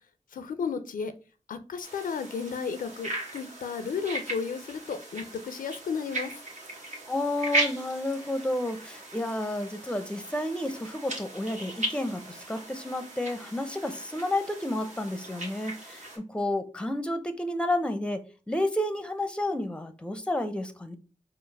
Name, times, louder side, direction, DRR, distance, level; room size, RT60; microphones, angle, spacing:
voice 1, 0.3-1.1 1.5-6.3, left 6 dB, 85° left, 0.4 m, -33 dB
sound 1, 1.8-16.2, right 1 dB, 60° right, 1.2 m, -37 dB
voice 2, 7.1-18.2 18.5-21.0, left 1 dB, 5° left, 0.6 m, -31 dB
4.4 x 2.0 x 3.3 m
cardioid pair, 45°, 14 cm